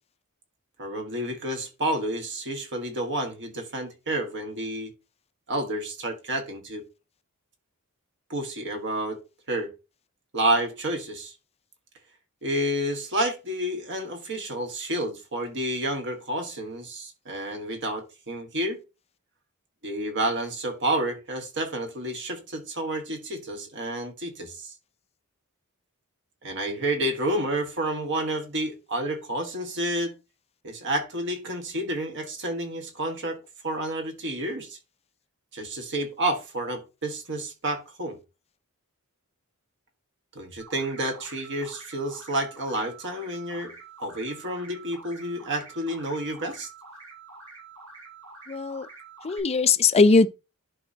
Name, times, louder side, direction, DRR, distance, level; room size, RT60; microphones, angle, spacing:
voice 1, 0.8-4.9 5.5-6.8 8.3-9.2 9.5-9.7 10.3-11.3 12.4-18.8 19.8-24.7 26.4-30.1 30.6-34.8 35.5-38.2 40.3-46.7, right 1 dB, 55° right, 1.6 m, -30 dB
sound 1, 40.6-49.4, right 4 dB, 75° right, 4.7 m, -47 dB
voice 2, 48.5-48.9 49.2-50.3, left 4 dB, 30° left, 0.4 m, -19 dB
11.0 x 5.3 x 2.8 m
head